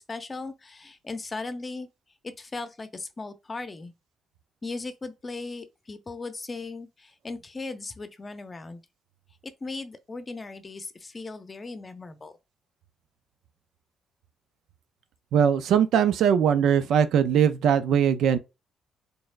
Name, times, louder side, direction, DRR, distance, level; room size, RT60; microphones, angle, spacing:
voice 1, 0.0-1.9 2.2-3.9 4.6-8.8 9.4-12.3, left 3 dB, 30° left, 0.7 m, -37 dB
voice 2, 15.3-18.4, right 8 dB, 80° right, 0.5 m, -21 dB
4.2 x 3.4 x 2.5 m
cardioid pair, 90°, 0 cm